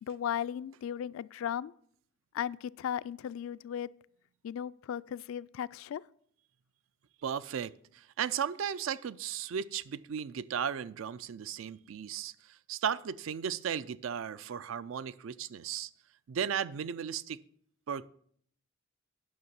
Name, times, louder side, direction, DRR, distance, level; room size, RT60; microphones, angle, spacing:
voice 1, 0.0-1.7 2.3-3.9 4.4-6.0, left 9 dB, 75° left, 0.3 m, -36 dB
voice 2, 7.2-15.9 16.3-17.4 17.9-18.1, right 8 dB, 70° right, 0.4 m, -35 dB
9.5 x 5.9 x 7.1 m
head